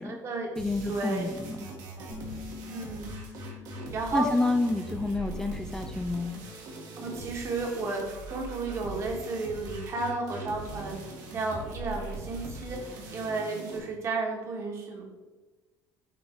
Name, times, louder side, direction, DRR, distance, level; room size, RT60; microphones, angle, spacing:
voice 1, 0.0-0.5 0.9-1.2 2.0-2.2 2.7-3.0 3.9-4.3 7.0-15.0, right 3 dB, 40° right, 1 dB, 1.7 m, -33 dB
sound 1, 0.5-13.8, right 2 dB, 60° right, 1.8 m, -41 dB
voice 2, 0.6-1.7 4.1-6.3, left 2 dB, 10° left, 5 dB, 0.4 m, -29 dB
sound 2, 2.1-7.5, left 5 dB, 65° left, 1.9 m, -48 dB
6.9 x 4.0 x 4.6 m, 1.2 s
cardioid pair, 140°, 7 cm